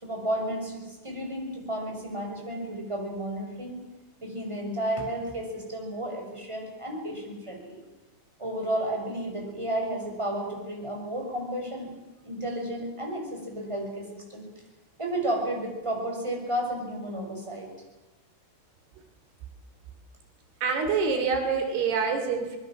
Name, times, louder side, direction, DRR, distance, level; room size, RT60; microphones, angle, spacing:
voice 1, 0.0-3.8 4.2-7.8 8.4-11.9 12.2-14.5 15.0-17.7, right 1 dB, 5° right, 1 dB, 6.1 m, -32 dB
voice 2, 20.6-22.6, right 5 dB, 85° right, 6 dB, 5.0 m, -26 dB
25.0 x 21.0 x 7.6 m, 1.2 s
omnidirectional pair, 4.5 m